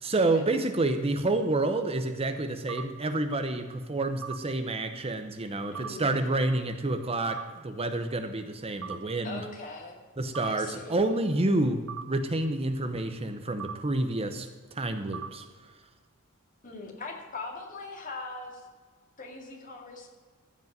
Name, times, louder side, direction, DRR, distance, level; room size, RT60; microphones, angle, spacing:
voice 1, 0.0-9.4 10.2-15.4, right 2 dB, 30° right, 7 dB, 0.8 m, -29 dB
sound 1, 2.7-2.8 4.2-4.4 5.8-5.9 7.3-7.4 8.8-9.0 10.3-10.5 11.9-12.0 13.6-13.7 15.1-15.3, right 8 dB, 70° right, 1.2 m, -37 dB
voice 2, 5.7-6.2 9.2-10.0 10.4-11.0 16.6-18.7 19.2-20.1, left 3 dB, 40° left, 0 dB, 2.3 m, -41 dB
15.0 x 5.3 x 9.1 m, 1.5 s
head